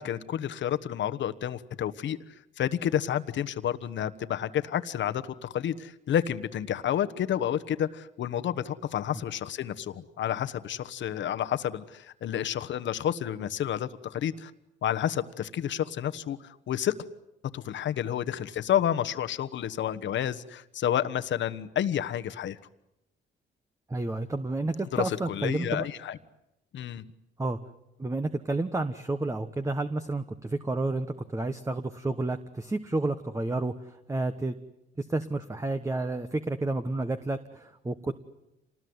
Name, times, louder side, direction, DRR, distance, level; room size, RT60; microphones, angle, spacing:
voice 1, 0.0-2.2 2.6-14.5 14.8-16.9 17.5-22.6 24.9-26.2 26.7-27.0, left 10 dB, 65° left, 10 dB, 1.3 m, -30 dB
voice 2, 23.9-25.9 27.4-27.6 28.0-34.6 35.0-38.1, right 2 dB, 15° right, 9 dB, 1.2 m, -30 dB
27.0 x 20.0 x 9.6 m, 0.89 s
cardioid pair, 90°, 20 cm